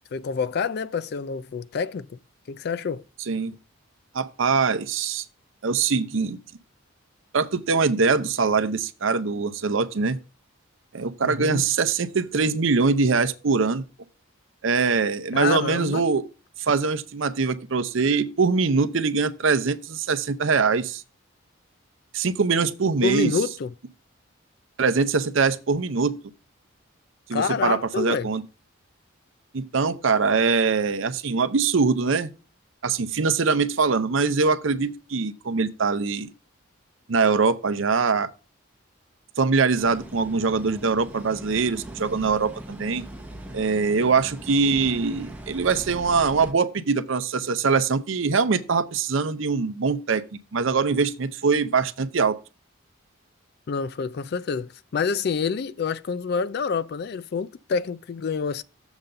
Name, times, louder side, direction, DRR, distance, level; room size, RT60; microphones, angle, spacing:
voice 1, 0.1-2.1 2.5-3.0 11.2-11.6 15.3-16.0 23.0-23.7 27.3-28.3 53.7-58.6, left 5 dB, 50° left, 0.3 m, -27 dB
voice 2, 3.3-3.6 4.1-5.2 5.6-6.4 7.3-10.2 10.9-13.8 14.6-16.2 16.6-21.0 22.1-23.3 24.8-26.2 27.3-28.4 29.5-32.3 32.8-36.3 37.1-38.3 39.4-43.0 43.5-50.2 50.5-52.4, right 4 dB, 65° right, 0.6 m, -23 dB
sound 1, 39.8-46.5, right 1 dB, 10° right, 0.8 m, -40 dB
7.1 x 3.9 x 6.6 m
head